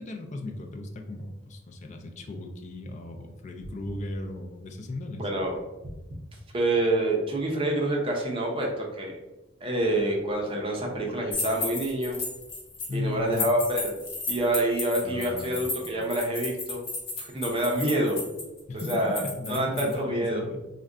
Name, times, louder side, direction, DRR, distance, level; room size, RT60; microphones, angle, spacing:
voice 1, 0.0-5.2 12.9-13.5 15.0-15.6 18.7-20.6, left 2 dB, 35° left, 3 dB, 0.4 m, -36 dB
voice 2, 5.2-5.6 6.5-9.2 9.6-12.2 12.9-13.9 14.3-16.8 17.2-18.2 18.7-19.2 19.5-20.5, right 1 dB, 25° right, 0 dB, 0.5 m, -27 dB
sound 1, 11.3-12.9 13.3-19.9, left 3 dB, 55° left, 1.0 m, -34 dB
2.4 x 2.1 x 3.5 m, 1.0 s
head